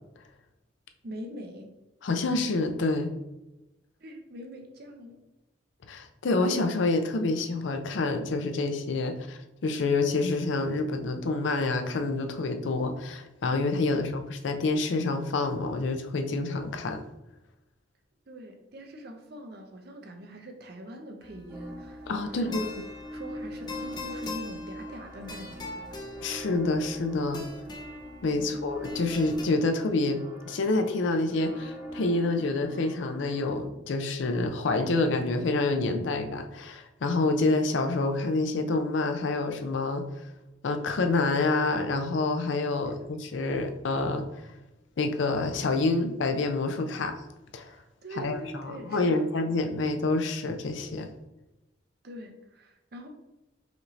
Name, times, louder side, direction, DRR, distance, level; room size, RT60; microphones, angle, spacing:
voice 1, 1.0-1.7 4.0-5.2 18.3-22.6 23.1-25.9 42.9-43.0 47.7-49.3 52.0-53.1, right 1 dB, 55° right, 3 dB, 0.6 m, -43 dB
voice 2, 2.0-3.1 5.9-17.0 22.1-22.9 26.2-27.4 28.2-40.0 40.6-44.2 45.0-47.1 47.5-47.7 48.2-51.1, left 3 dB, 75° left, 6 dB, 0.5 m, -27 dB
sound 1, 21.2-29.4, left 3 dB, 20° left, 0.5 m, -42 dB
sound 2, 21.5-33.6, equal, 15° right, 0.8 m, -41 dB
4.9 x 2.6 x 3.2 m, 0.99 s
head